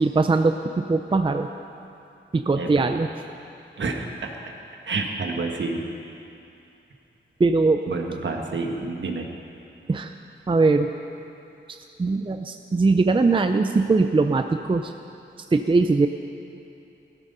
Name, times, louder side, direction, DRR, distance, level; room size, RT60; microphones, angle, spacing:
voice 1, 0.0-1.5 2.3-3.1 7.4-7.8 9.9-10.1 10.5-10.9 11.7-14.9 15.5-16.1, right 3 dB, 25° right, 7 dB, 0.5 m, -21 dB
voice 2, 2.5-2.9 3.8-4.3 4.8-5.8 7.9-9.3, right 3 dB, 65° right, 2 dB, 1.6 m, -29 dB
16.5 x 13.5 x 5.5 m, 2.7 s
wide cardioid pair, 125°, 20 cm